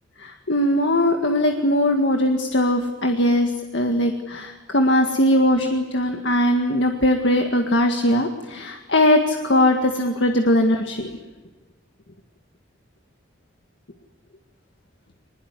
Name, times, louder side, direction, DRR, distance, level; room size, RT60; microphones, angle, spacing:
voice 1, 0.2-11.1, left 1 dB, 60° left, 4 dB, 1.9 m, -20 dB
24.0 x 21.0 x 9.8 m, 1.3 s
head